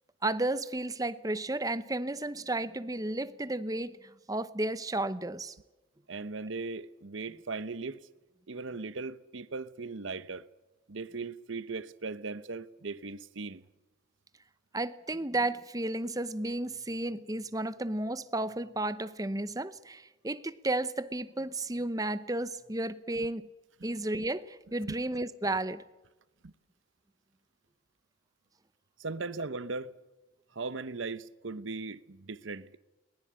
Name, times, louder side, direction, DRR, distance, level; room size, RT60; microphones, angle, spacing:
voice 1, 0.2-5.6 14.7-23.5 23.8-25.8, right 2 dB, 20° right, 0.8 m, -33 dB
voice 2, 6.1-8.1 8.5-10.5 10.9-13.6 26.4-26.5 29.0-29.9 30.5-32.8, right 3 dB, 75° right, 0.9 m, -38 dB
21.5 x 20.0 x 8.8 m
head